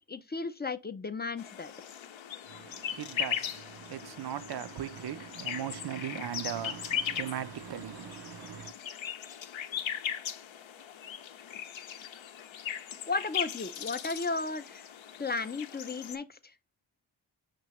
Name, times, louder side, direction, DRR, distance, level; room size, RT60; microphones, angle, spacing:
voice 1, 0.1-1.7 13.1-14.8 15.2-16.5, left 3 dB, 25° left, 0.4 m, -34 dB
sound 1, 1.4-16.2, left 9 dB, 70° left, 0.6 m, -39 dB
voice 2, 2.5-8.7, right 10 dB, 55° right, 0.5 m, -39 dB
6.0 x 2.7 x 3.0 m
wide cardioid pair, 70°, 48 cm